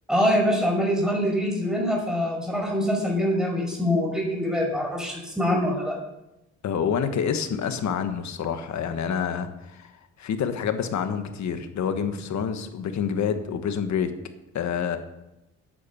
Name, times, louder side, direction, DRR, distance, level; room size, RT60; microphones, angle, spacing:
voice 1, 0.1-6.0, equal, ahead, 0 dB, 5.4 m, -24 dB
voice 2, 6.6-9.9 10.2-14.1 14.5-15.0, left 7 dB, 65° left, 8 dB, 1.4 m, -27 dB
9.9 x 9.8 x 7.1 m, 0.92 s
cardioid pair, 90°, 30 cm